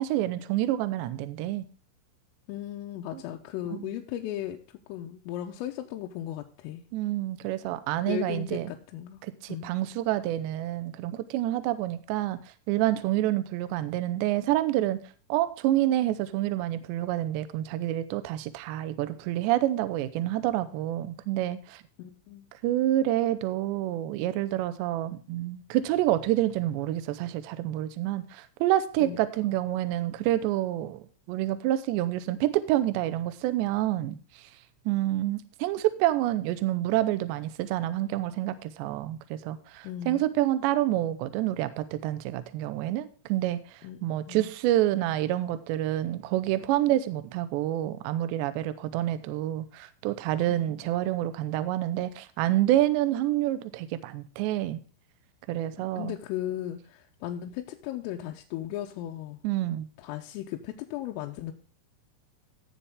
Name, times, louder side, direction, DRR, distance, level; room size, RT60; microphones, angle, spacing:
voice 1, 0.0-1.7 3.1-3.2 3.7-3.9 6.9-8.7 9.2-12.4 12.7-15.0 15.3-21.8 22.6-34.4 34.9-54.8 55.5-56.1 59.4-59.9, right 14 dB, 75° right, 13 dB, 2.7 m, -28 dB
voice 2, 2.5-4.6 4.9-6.8 8.1-9.2 9.5-9.7 22.0-22.5 29.0-29.2 39.8-40.3 43.8-44.0 44.3-44.5 50.5-50.7 55.8-59.4 60.0-61.5, left 12 dB, 90° left, 2 dB, 3.5 m, -36 dB
16.5 x 7.0 x 3.6 m, 0.38 s
omnidirectional pair, 5.7 m